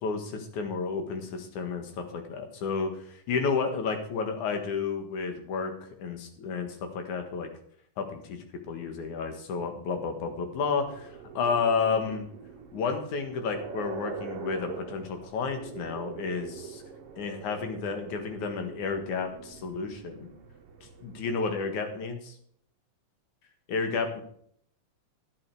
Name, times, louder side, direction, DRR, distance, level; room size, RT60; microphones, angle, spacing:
voice 1, 0.0-7.5 8.0-11.1 11.3-12.3 12.7-16.8 17.2-20.3 21.0-22.4 23.7-24.2, left 5 dB, 85° left, 6 dB, 3.1 m, -31 dB
sound 1, 10.9-21.6, right 5 dB, 60° right, 1.8 m, -43 dB
11.0 x 9.9 x 4.7 m, 0.64 s
omnidirectional pair, 3.4 m